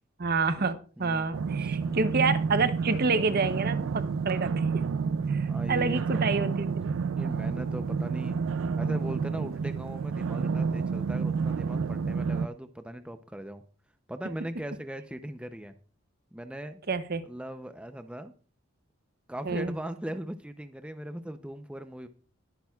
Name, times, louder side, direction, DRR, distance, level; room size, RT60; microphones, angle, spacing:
voice 1, 0.2-4.8 5.3-6.7 16.9-17.3 19.4-19.7, right 4 dB, 50° right, 12 dB, 0.7 m, -28 dB
voice 2, 1.0-2.4 5.5-6.4 7.2-8.4 8.8-13.6 14.1-15.7 16.3-16.8 17.2-18.3 19.3-22.1, right 1 dB, 5° right, 8 dB, 0.6 m, -39 dB
sound 1, 1.3-12.5, right 5 dB, 75° right, 0.4 m, -29 dB
21.0 x 8.8 x 2.4 m, 0.39 s
head